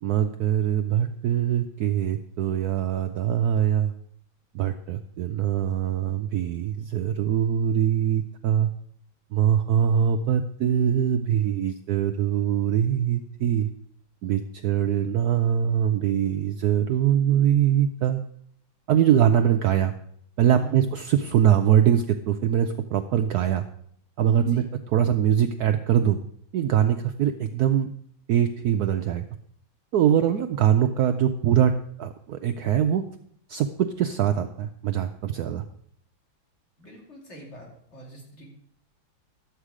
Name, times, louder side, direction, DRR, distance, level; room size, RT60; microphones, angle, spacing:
voice 1, 0.0-3.9 4.5-8.7 9.3-13.7 14.2-18.2 18.9-19.9 20.4-23.7 24.2-26.2 26.5-27.9 28.3-29.2 29.9-31.7 32.0-33.0 33.5-35.6, right 9 dB, 85° right, 7 dB, 0.8 m, -23 dB
voice 2, 36.8-38.5, right 2 dB, 35° left, -2 dB, 2.9 m, -45 dB
11.5 x 8.2 x 4.8 m, 0.67 s
omnidirectional pair, 2.2 m